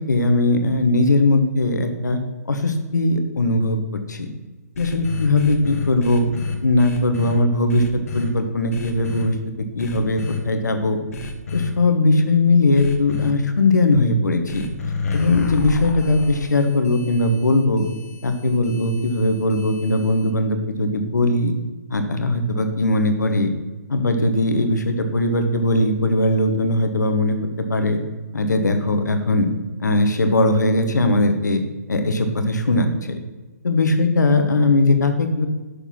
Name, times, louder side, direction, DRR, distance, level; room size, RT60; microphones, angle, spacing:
voice 1, 0.1-2.2 2.5-4.3 4.8-6.3 6.6-9.3 9.7-11.0 11.5-14.7 15.1-17.9 18.2-21.5 21.9-23.5 23.9-27.4 27.7-28.0 28.3-29.5 29.8-31.6 31.9-33.2 33.6-35.5, left 2 dB, 85° left, 7 dB, 1.2 m, -19 dB
sound 1, 4.7-7.4 7.7-8.3 8.7-9.3 9.8-10.4 11.1-11.7 12.7-13.3 14.5-20.3, left 4 dB, 55° left, 1.4 m, -30 dB
6.5 x 5.1 x 5.8 m, 1.2 s
hypercardioid pair, 150°, 9 cm